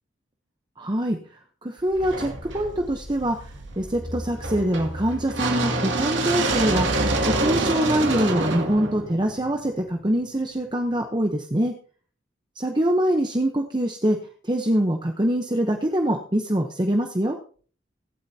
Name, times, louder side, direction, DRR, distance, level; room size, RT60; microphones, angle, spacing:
voice 1, 0.8-1.2 1.6-6.9 7.4-11.7 12.6-14.2 14.4-17.4, right 1 dB, 25° right, 3 dB, 0.9 m, -24 dB
sound 1, 2.0-10.0, right 2 dB, 70° right, 2.5 m, -27 dB
23.0 x 8.8 x 2.8 m, 0.44 s
head